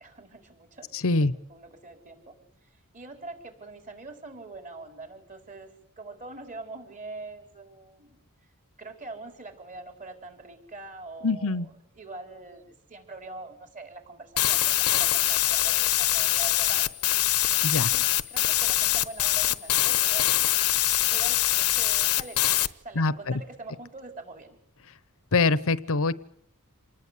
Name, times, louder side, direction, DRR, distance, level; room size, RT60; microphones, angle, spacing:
voice 1, 0.0-0.9 1.2-2.3 2.6-8.2 8.8-17.0 17.8-20.7 21.1-22.5 22.8-24.6, right 2 dB, 35° right, 4 dB, 4.9 m, -44 dB
voice 2, 11.2-11.7 17.6-17.9 23.0-23.4 25.3-26.1, left 3 dB, 65° left, 17 dB, 0.9 m, -24 dB
sound 1, 14.4-22.7, left 15 dB, 85° left, 1.0 m, -24 dB
27.0 x 19.5 x 8.4 m, 0.70 s
head